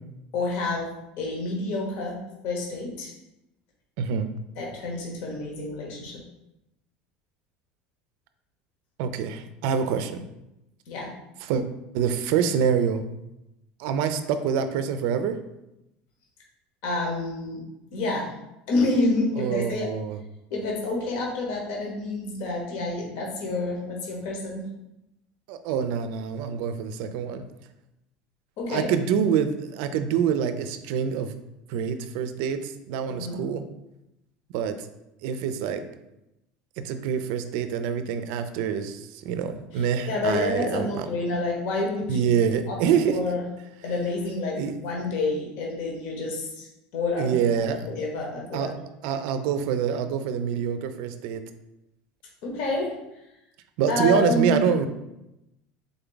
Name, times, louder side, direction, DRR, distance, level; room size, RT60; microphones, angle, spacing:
voice 1, 0.3-0.9 1.2-2.2 2.4-3.1 4.6-6.2 10.9-11.1 16.8-17.6 17.9-18.3 18.7-19.9 20.5-24.6 28.6-28.9 33.1-33.4 39.7-42.4 42.7-42.8 43.1-43.4 43.8-46.7 46.9-47.3 47.6-48.8 52.4-52.9 53.9-54.6, left 2 dB, 65° left, -1 dB, 1.0 m, -28 dB
voice 2, 4.0-4.3 9.0-10.2 11.5-11.6 11.9-13.0 13.8-15.4 19.4-20.2 25.5-27.4 28.7-31.3 31.7-33.6 34.5-34.7 35.2-35.8 36.8-41.1 42.1-43.2 44.6-44.7 47.2-47.9 48.5-48.7 49.0-51.4 53.8-54.9, right 7 dB, 70° right, 10 dB, 0.4 m, -26 dB
3.8 x 3.4 x 3.8 m, 0.90 s
cardioid pair, 150°, 4 cm